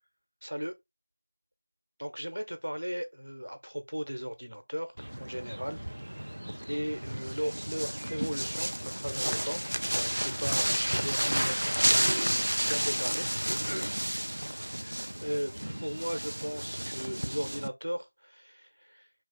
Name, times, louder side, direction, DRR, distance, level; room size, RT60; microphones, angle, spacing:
voice 1, 0.4-0.7 2.0-4.9 5.2-6.3 6.7-9.6 9.9-11.6 11.9-12.3 12.7-14.0 14.8-15.5 15.8-19.1, equal, 75° right, 0.9 m, -37 dB
sound 1, 5.0-17.7, equal, 55° right, 0.3 m, -31 dB
3.3 x 2.4 x 3.3 m
figure-of-eight pair, 180°, 0 cm